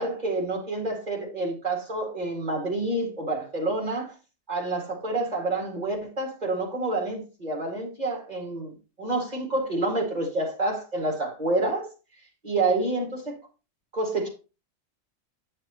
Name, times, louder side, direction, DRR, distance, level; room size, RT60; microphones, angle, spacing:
voice 1, 0.0-4.1 4.5-11.9 12.4-13.4 13.9-14.3, right 2 dB, 35° right, 2.2 m, -28 dB
9.1 x 6.5 x 2.9 m
omnidirectional pair, 1.3 m